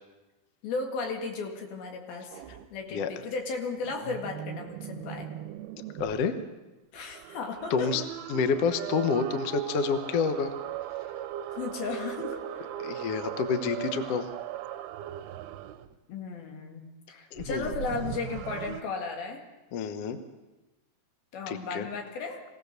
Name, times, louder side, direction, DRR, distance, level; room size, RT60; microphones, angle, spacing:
voice 1, 0.6-2.4 2.7-5.3 6.9-7.9 11.5-12.7 16.1-19.4 21.3-22.4, left 4 dB, 80° left, 3 dB, 3.9 m, -35 dB
sound 1, 2.3-2.7 3.8-6.2 7.0-16.0 17.4-18.8, right 11 dB, 90° right, 2.7 m, -38 dB
voice 2, 5.9-6.3 7.7-8.0 8.3-10.5 12.8-14.3 17.3-17.7 19.7-20.2 21.5-21.9, left 5 dB, 60° left, 9 dB, 1.6 m, -28 dB
23.5 x 16.5 x 6.7 m, 1.1 s
omnidirectional pair, 4.2 m